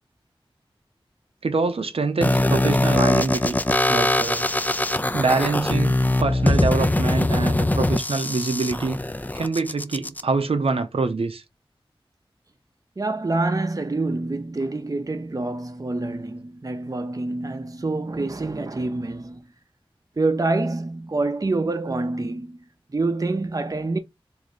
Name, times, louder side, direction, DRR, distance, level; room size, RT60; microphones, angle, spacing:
voice 1, 1.4-3.6 3.9-4.5 5.1-9.0 9.4-11.4, right 3 dB, 85° right, 0.6 m, -25 dB
sound 1, 2.2-10.2, left 1 dB, 15° left, 0.4 m, -22 dB
voice 2, 13.0-19.5 20.2-22.6 22.9-24.0, right 2 dB, 40° right, 0.6 m, -26 dB
3.2 x 2.6 x 3.9 m
wide cardioid pair, 60°, 10 cm